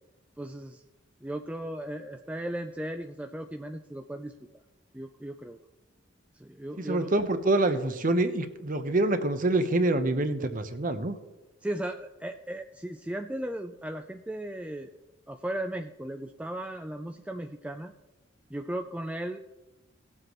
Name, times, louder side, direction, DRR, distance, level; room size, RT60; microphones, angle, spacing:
voice 1, 0.4-0.8 1.2-4.3 4.9-5.6 6.3-7.3 11.6-15.0 15.3-17.9 18.5-19.4, right 1 dB, 5° right, 5 dB, 0.3 m, -36 dB
voice 2, 6.9-11.2, right 2 dB, 40° right, 9 dB, 0.8 m, -26 dB
17.5 x 7.6 x 3.1 m, 1.1 s
head